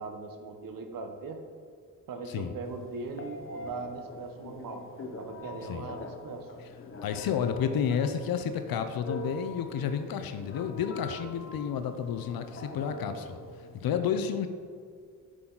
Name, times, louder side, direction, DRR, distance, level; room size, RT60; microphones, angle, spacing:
voice 1, 0.0-1.4 2.1-6.5 12.6-13.0, right 4 dB, 70° right, 5 dB, 0.9 m, -40 dB
Telephone, 2.6-13.8, left 2 dB, 40° left, 0.8 m, -44 dB
voice 2, 7.0-13.4 13.7-14.5, left 7 dB, 85° left, 8 dB, 0.6 m, -31 dB
9.7 x 6.1 x 3.9 m, 2.1 s
wide cardioid pair, 125°, 34 cm